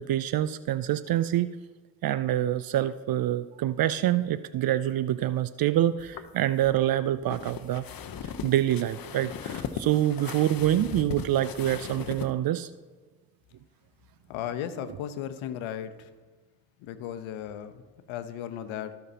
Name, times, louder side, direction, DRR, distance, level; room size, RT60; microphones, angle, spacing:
voice 1, 0.0-1.5 2.0-7.8 8.4-12.7, right 12 dB, 45° right, 15 dB, 0.5 m, -26 dB
sound 1, 6.0-12.3, left 7 dB, 45° left, 0.9 m, -38 dB
voice 2, 14.3-16.1 16.8-19.0, left 10 dB, 70° left, 10 dB, 1.0 m, -36 dB
17.0 x 5.8 x 2.9 m, 1.4 s
hypercardioid pair, 45°, 50 cm